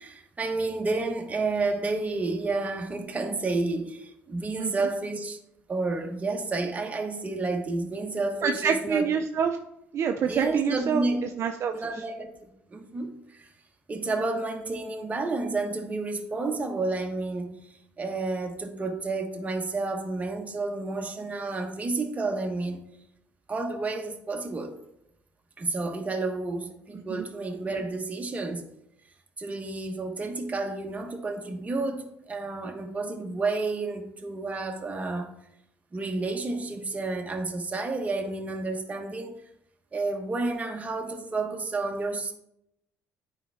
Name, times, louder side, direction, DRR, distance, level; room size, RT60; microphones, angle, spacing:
voice 1, 0.0-5.4 5.7-9.1 10.3-11.3 11.7-13.5 13.9-17.5 18.0-22.8 23.5-24.7 25.6-28.6 29.4-35.3 35.9-39.4 39.9-42.3, right 3 dB, 25° right, 1.2 m, -30 dB
voice 2, 8.4-9.6 9.9-11.0 11.4-11.7 27.1-27.2, right 7 dB, 55° right, 0.5 m, -26 dB
9.0 x 4.5 x 3.5 m
supercardioid pair, 85°, 6 cm